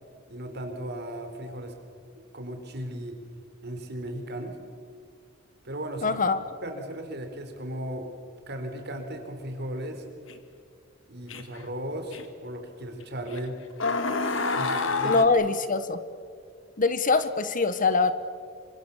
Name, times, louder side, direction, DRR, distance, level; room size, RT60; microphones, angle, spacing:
voice 1, 0.3-1.7 2.3-3.2 3.6-4.6 5.6-6.1 6.6-8.1 8.5-10.0 11.1-13.6 14.5-15.2, right 1 dB, 55° right, 5 dB, 4.1 m, -36 dB
voice 2, 6.0-6.4 15.0-16.0 16.8-18.1, left 4 dB, 45° left, 12 dB, 1.2 m, -23 dB
sound 1, 10.3-10.4 11.3-11.6 12.1-12.2 13.3-13.4 13.8-15.3, left 3 dB, 70° left, 2.0 m, -27 dB
26.5 x 25.0 x 7.3 m, 2.2 s
head